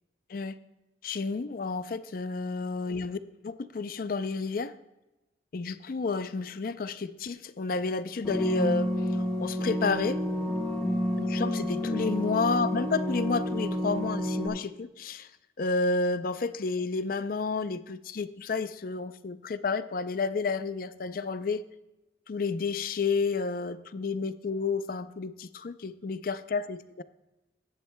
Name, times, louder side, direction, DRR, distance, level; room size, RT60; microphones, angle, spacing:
voice 1, 1.0-4.7 5.5-10.2 11.2-15.3 15.6-21.6 22.3-27.0, left 4 dB, 50° left, 13 dB, 0.4 m, -31 dB
sound 1, 8.2-14.5, equal, 5° left, 1.8 m, -30 dB
16.0 x 11.0 x 2.2 m, 0.99 s
head